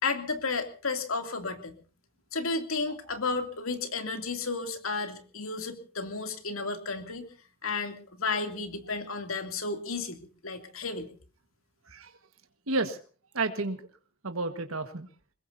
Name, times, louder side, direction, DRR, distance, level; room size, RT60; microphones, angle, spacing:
voice 1, 0.0-1.8 2.3-7.3 7.6-11.1, left 4 dB, 80° left, 6 dB, 2.7 m, -33 dB
voice 2, 12.7-13.0 13.3-13.9 14.2-15.1, right 3 dB, 85° right, 7 dB, 1.6 m, -31 dB
24.5 x 21.5 x 2.7 m, 0.39 s
head